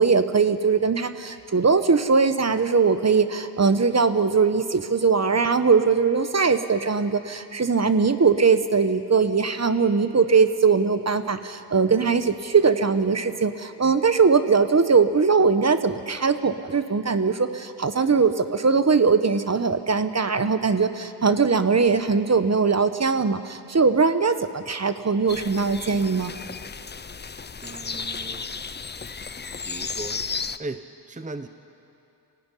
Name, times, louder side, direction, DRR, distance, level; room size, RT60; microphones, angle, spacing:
voice 1, 0.0-26.3, right 5 dB, 40° right, 10 dB, 1.1 m, -21 dB
sound 1, 25.3-30.6, left 5 dB, 25° left, 0.6 m, -34 dB
voice 2, 27.6-28.5 29.6-30.2 30.6-30.8 31.1-31.5, right 2 dB, 20° right, 9 dB, 0.8 m, -36 dB
24.0 x 15.5 x 10.0 m, 2.7 s
wide cardioid pair, 80°, 42 cm